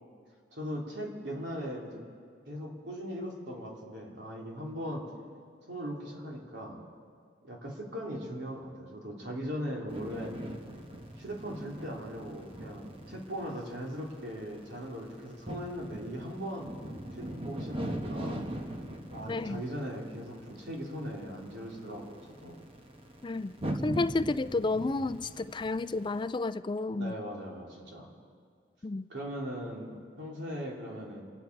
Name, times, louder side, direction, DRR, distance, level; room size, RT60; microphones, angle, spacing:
voice 1, 0.5-2.0 2.5-5.0 5.7-6.8 7.4-10.4 11.2-16.7 17.1-18.5 19.1-22.6 26.8-28.1 29.1-31.2, equal, 85° right, -2 dB, 3.1 m, -39 dB
sound 1, 9.9-26.2, right 1 dB, 35° right, 1.3 m, -41 dB
voice 2, 19.3-19.6 23.2-23.6 23.8-27.1 28.8-29.1, left 3 dB, 25° left, 13 dB, 0.4 m, -31 dB
28.0 x 10.0 x 4.7 m, 2.2 s
head